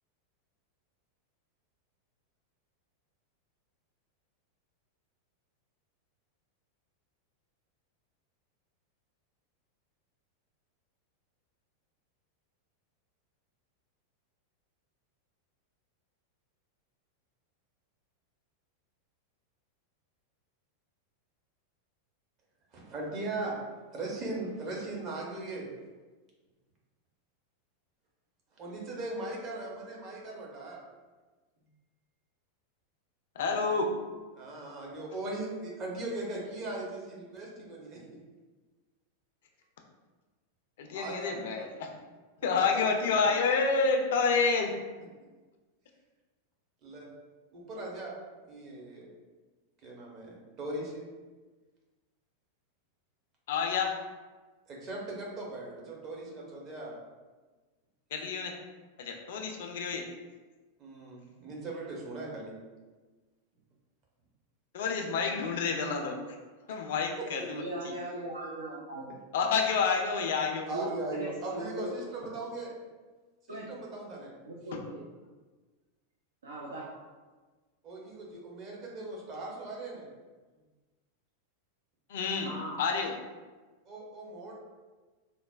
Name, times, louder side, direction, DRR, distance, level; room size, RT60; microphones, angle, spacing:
voice 1, 22.7-23.6 23.9-25.7 28.6-30.8 34.3-38.2 40.9-41.7 42.4-43.3 46.8-47.1 47.5-48.1 48.5-49.1 49.8-51.0 54.7-56.9 60.8-62.5 67.2-67.5 70.7-72.7 73.5-74.3 77.8-80.1 83.8-84.5, right 2 dB, 35° right, -3 dB, 0.8 m, -39 dB
voice 2, 33.4-33.8 40.8-41.9 42.4-44.7 53.5-53.9 58.1-58.5 59.0-60.0 64.7-66.1 66.7-67.9 69.3-70.7 82.1-82.5 82.8-83.1, left 5 dB, 55° left, 2 dB, 0.4 m, -28 dB
voice 3, 67.6-69.1 70.7-71.9 73.5-73.7 74.5-75.0 76.4-76.8 82.4-82.8, right 1 dB, 70° right, -6 dB, 0.5 m, -39 dB
4.0 x 2.0 x 2.3 m, 1.3 s
figure-of-eight pair, 90°, 0 cm